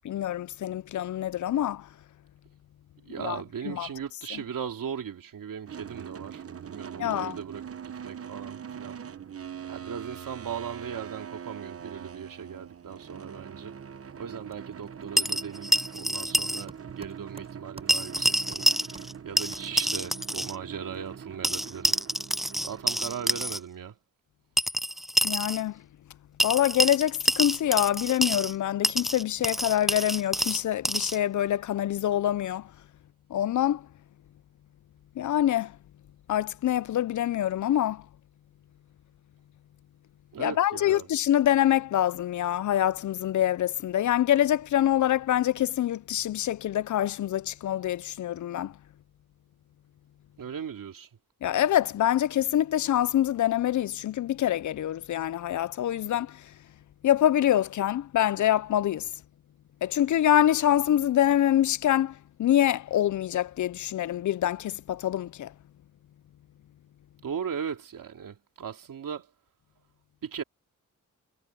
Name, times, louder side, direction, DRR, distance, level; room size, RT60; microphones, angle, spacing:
voice 1, 0.0-1.9 3.2-3.9 4.3-4.4 7.0-7.4 25.2-25.8 26.4-32.7 33.3-33.9 35.2-35.8 36.3-38.1 40.4-48.8 51.4-56.5 57.0-59.1 59.8-65.5, left 11 dB, 65° left, 0.5 m, -25 dB
voice 2, 3.1-9.0 9.7-13.7 14.2-18.7 19.2-22.0 22.6-23.9 40.3-41.1 50.4-51.1 67.2-69.3 70.2-70.4, right 7 dB, 85° right, 2.9 m, -38 dB
sound 1, 5.7-23.6, right 8 dB, 45° right, 1.0 m, -43 dB
sound 2, 14.5-20.1, right 2 dB, 20° right, 4.8 m, -53 dB
sound 3, 15.2-16.6 16.9-17.0 17.9-19.1 19.4-20.5 21.4-23.6 24.6-25.6 26.4-28.5 28.8-31.2, equal, ahead, 0.5 m, -27 dB
wide cardioid pair, 120°, 32 cm